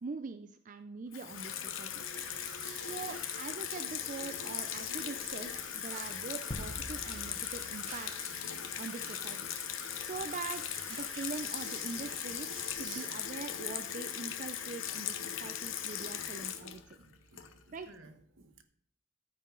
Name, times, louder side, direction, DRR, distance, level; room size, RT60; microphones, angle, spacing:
voice 1, 0.0-2.0 2.8-8.3 8.8-9.4 9.8-17.0 17.7-17.9, right 4 dB, 40° right, 0.5 m, -43 dB
Water tap faucet / Sink (filling or washing), 1.1-17.8, left 9 dB, 85° left, 0.9 m, -39 dB
sound 1, 2.0-12.7, right 5 dB, 90° right, 2.6 m, -50 dB
sound 2, 6.5-8.9, left 1 dB, 35° left, 0.9 m, -45 dB
voice 2, 12.7-13.1 17.0-17.5 17.9-18.6, right 7 dB, 75° right, 1.2 m, -51 dB
14.0 x 6.1 x 3.8 m
head